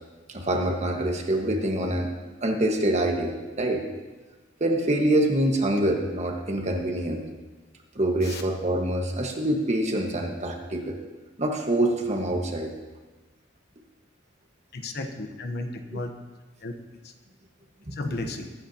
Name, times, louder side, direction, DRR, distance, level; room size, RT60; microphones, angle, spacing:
voice 1, 0.3-2.1 2.4-3.8 4.6-7.2 7.9-11.0 11.4-12.7 17.9-18.0, right 1 dB, 35° right, 2 dB, 1.5 m, -25 dB
voice 2, 14.7-16.1 16.6-16.7 17.0-17.1 17.9-18.5, left 2 dB, 55° left, 6 dB, 1.0 m, -33 dB
22.0 x 10.0 x 2.9 m, 1.2 s
head